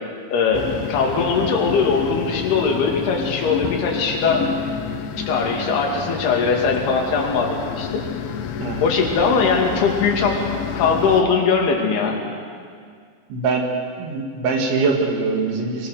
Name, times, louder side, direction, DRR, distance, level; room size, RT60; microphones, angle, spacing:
voice 1, 0.3-4.5 5.3-8.0 8.8-12.2, left 5 dB, 60° left, 0 dB, 4.4 m, -20 dB
sound 1, 0.5-11.2, left 8 dB, 85° left, 3.7 m, -29 dB
voice 2, 13.3-13.7 14.0-15.9, right 4 dB, 75° right, 1 dB, 4.7 m, -22 dB
24.0 x 20.5 x 6.9 m, 2.1 s
omnidirectional pair, 5.3 m